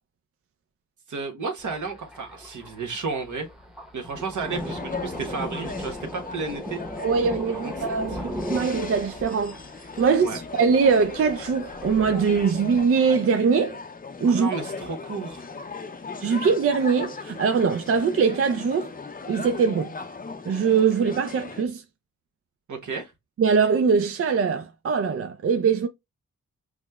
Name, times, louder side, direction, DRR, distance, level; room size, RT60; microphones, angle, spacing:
voice 1, 1.1-3.5 3.9-6.8 7.5-7.7 8.1-8.3 10.2-10.4 14.2-15.5 22.7-23.1, right 4 dB, 70° right, 1.2 m, -32 dB
Thunder, 1.6-12.9, equal, ahead, 0.9 m, -38 dB
sound 1, 4.5-21.6, left 4 dB, 25° left, 0.6 m, -38 dB
voice 2, 7.0-9.6 10.0-13.8 14.2-14.5 16.2-18.9 19.3-19.9 20.5-21.8 23.4-25.9, right 5 dB, 45° right, 0.5 m, -22 dB
6.1 x 2.1 x 2.3 m
cardioid pair, 55°, 31 cm